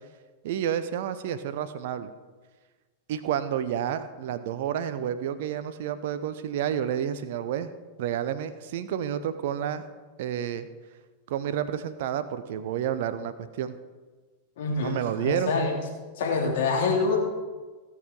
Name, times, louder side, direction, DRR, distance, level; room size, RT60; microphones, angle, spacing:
voice 1, 0.4-2.1 3.1-7.7 8.0-9.9 10.2-10.7 11.3-13.7 14.8-15.5, right 9 dB, 55° right, 12 dB, 0.6 m, -30 dB
voice 2, 14.6-15.7 16.2-17.2, left 4 dB, 55° left, -1 dB, 3.1 m, -26 dB
16.5 x 6.6 x 5.3 m, 1.3 s
figure-of-eight pair, 90°, 0 cm